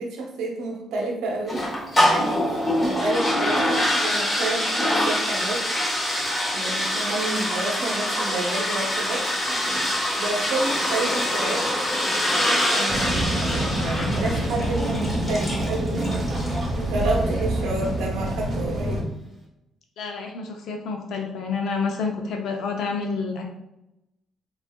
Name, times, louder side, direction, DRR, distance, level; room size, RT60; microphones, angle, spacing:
voice 1, 0.0-1.6 2.1-5.6 6.5-9.9 10.2-11.7 12.6-19.0, right 2 dB, 85° right, 0 dB, 0.7 m, -30 dB
sound 1, 1.5-16.7, equal, 25° left, 1.0 m, -25 dB
sound 2, 12.9-19.0, right 1 dB, 50° right, 0.7 m, -26 dB
voice 2, 17.4-17.8 20.0-23.4, left 4 dB, 75° left, 2 dB, 0.5 m, -29 dB
3.5 x 2.4 x 2.2 m, 0.87 s
cardioid pair, 90°, 0 cm